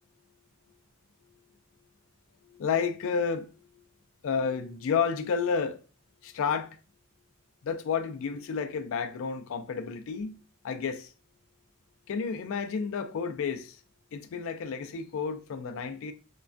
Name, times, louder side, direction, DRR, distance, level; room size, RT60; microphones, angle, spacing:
voice 1, 2.4-3.5 4.2-5.8 6.2-6.8 7.6-11.1 12.1-13.8 14.1-16.1, left 6 dB, 65° left, 0.4 m, -31 dB
3.1 x 2.2 x 2.5 m
head